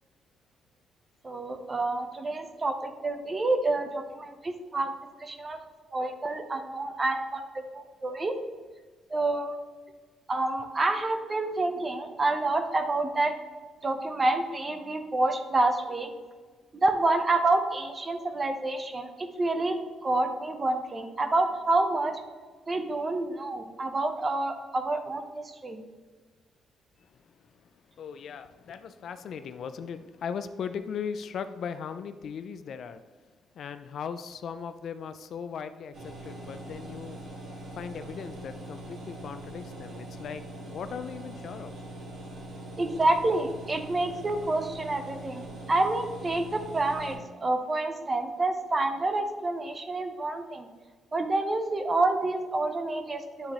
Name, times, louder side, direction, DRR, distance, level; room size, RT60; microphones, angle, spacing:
voice 1, 1.2-4.9 5.2-5.6 5.9-8.4 9.1-9.6 10.3-13.3 13.8-16.1 16.7-22.2 22.7-25.8 42.8-50.7 51.1-53.5, right 2 dB, 30° right, 7 dB, 0.7 m, -28 dB
voice 2, 28.0-33.0 33.6-37.2 37.8-41.7, left 7 dB, 65° left, 11 dB, 0.3 m, -38 dB
sound 1, 35.9-47.2, right 1 dB, 70° right, 1.9 m, -42 dB
9.8 x 3.6 x 3.0 m, 1.4 s
cardioid pair, 90°, 0 cm